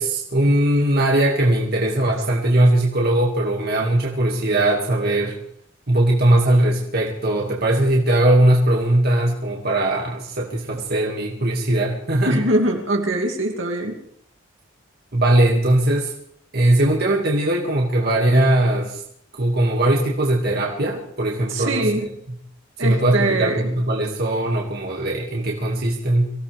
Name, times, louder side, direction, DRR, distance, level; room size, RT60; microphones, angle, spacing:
voice 1, 0.0-5.4 5.9-12.4 15.1-16.1 16.5-19.0 19.4-22.1 22.8-26.3, right 1 dB, 50° right, -2 dB, 2.2 m, -19 dB
voice 2, 12.3-14.0 21.5-22.1 22.8-23.6, right 1 dB, 65° right, 1 dB, 2.7 m, -22 dB
24.5 x 16.0 x 3.5 m, 0.68 s
head